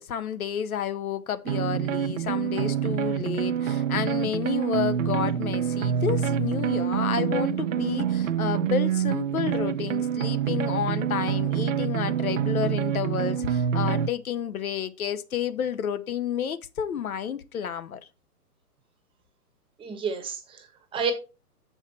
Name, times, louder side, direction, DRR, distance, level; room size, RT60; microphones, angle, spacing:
voice 1, 0.0-18.0, left 8 dB, 65° left, 0.8 m, -30 dB
sound 1, 1.4-14.1, right 9 dB, 55° right, 0.6 m, -26 dB
voice 2, 19.8-21.1, right 5 dB, 10° right, 1.0 m, -31 dB
7.3 x 5.7 x 4.4 m
figure-of-eight pair, 125°, 47 cm